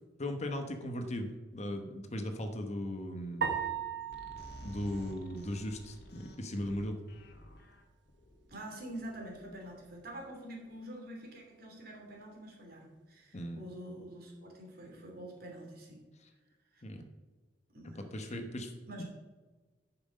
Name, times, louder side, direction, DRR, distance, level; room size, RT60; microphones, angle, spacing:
voice 1, 0.2-3.5 4.6-7.0 13.3-13.6 16.8-17.0 18.0-18.7, left 1 dB, 40° left, 6 dB, 1.0 m, -38 dB
sound 1, 3.4-5.9, right 7 dB, 75° right, 1.0 m, -38 dB
sound 2, 4.1-10.5, left 1 dB, 60° left, 1.6 m, -53 dB
voice 2, 8.5-16.0 16.7-16.8 17.7-18.4 18.9-19.0, right 1 dB, 55° right, 0 dB, 2.7 m, -46 dB
10.5 x 6.0 x 5.2 m, 1.3 s
head